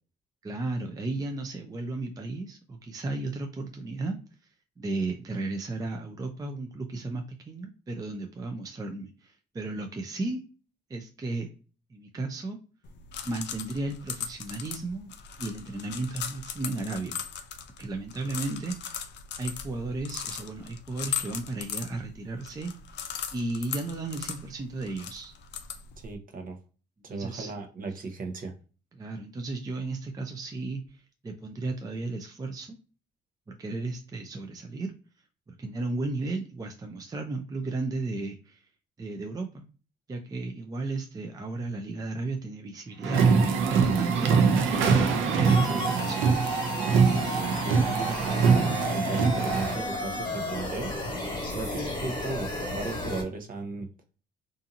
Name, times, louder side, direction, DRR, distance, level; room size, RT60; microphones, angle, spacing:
voice 1, 0.4-4.2 4.8-10.4 10.9-11.5 11.9-12.6 13.2-15.1 15.4-17.2 17.8-19.1 19.4-22.7 23.3-25.3 27.1-27.5 28.9-32.8 33.5-34.9 35.5-38.7 39.0-39.6 40.1-44.9 45.3-46.2, right 2 dB, 20° right, 4 dB, 0.4 m, -34 dB
sound 1, 12.8-26.2, left 8 dB, 60° left, 0.5 m, -39 dB
voice 2, 26.0-26.6 27.0-28.5 45.5-45.8 47.7-51.0 51.5-53.9, right 3 dB, 45° right, 5 dB, 0.7 m, -36 dB
sound 2, 43.0-49.7, right 5 dB, 85° right, 0.6 m, -23 dB
sound 3, 45.5-53.2, left 2 dB, 25° left, 1.3 m, -33 dB
2.7 x 2.5 x 2.4 m, 0.37 s
cardioid pair, 90°, 20 cm